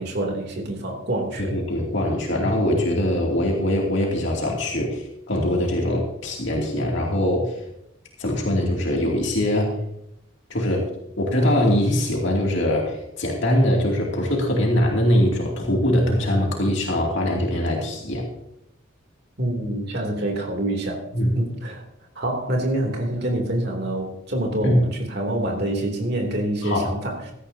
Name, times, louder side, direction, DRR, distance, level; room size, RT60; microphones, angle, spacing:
voice 1, 0.0-1.6 19.4-21.0 21.3-21.8 22.1-27.3, right 1 dB, 50° right, 1 dB, 3.0 m, -26 dB
voice 2, 1.4-7.6 8.2-9.8 10.5-10.9 11.2-18.3 21.1-21.4 24.6-24.8 26.6-26.9, left 1 dB, 60° left, -1 dB, 2.7 m, -22 dB
16.5 x 13.5 x 2.8 m, 0.80 s
head